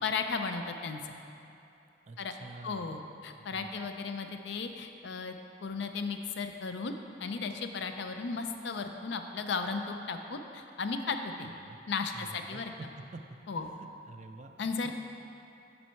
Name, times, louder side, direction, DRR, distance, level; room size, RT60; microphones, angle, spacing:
voice 1, 0.0-1.1 2.2-2.3 2.6-5.4 5.6-6.9 7.2-11.5 11.9-12.7 13.5-13.7 14.6-14.9, left 4 dB, 60° left, 6 dB, 0.5 m, -35 dB
voice 2, 2.1-3.0 3.4-3.9 11.5-11.8 12.1-12.6 13.1-13.2 13.6-14.9, right 3 dB, 35° right, 6 dB, 0.3 m, -49 dB
7.8 x 5.5 x 4.5 m, 2.8 s
head